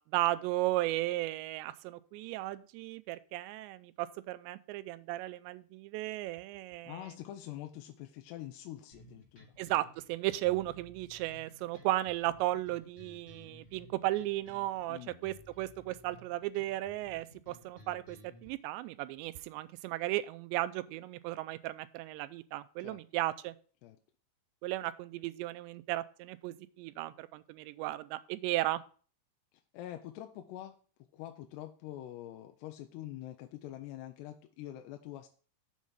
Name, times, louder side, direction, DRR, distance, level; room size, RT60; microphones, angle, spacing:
voice 1, 0.1-7.0 9.6-23.5 24.6-28.8, right 16 dB, 85° right, 14 dB, 2.7 m, -35 dB
voice 2, 6.8-9.5 14.9-15.1 22.8-23.0 23.8-24.0 29.7-30.8 31.1-35.3, left 13 dB, 85° left, 6 dB, 2.6 m, -45 dB
sound 1, 8.9-18.5, left 1 dB, 15° left, 2.6 m, -57 dB
7.4 x 5.5 x 6.2 m, 0.41 s
omnidirectional pair, 5.1 m